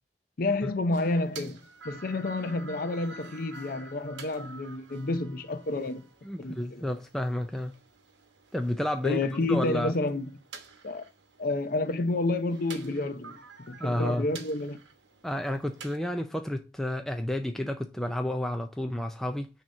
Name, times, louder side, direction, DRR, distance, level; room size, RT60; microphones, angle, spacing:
voice 1, 0.4-6.0 6.4-6.8 9.0-10.3 10.8-11.0 11.4-13.4 13.7-14.8, left 2 dB, 50° left, 0.6 m, -30 dB
sound 1, 0.9-16.0, right 4 dB, 75° right, 1.0 m, -49 dB
voice 2, 6.2-7.7 8.5-9.9 13.8-14.3 15.2-19.5, left 1 dB, ahead, 0.3 m, -31 dB
6.2 x 2.9 x 5.6 m
head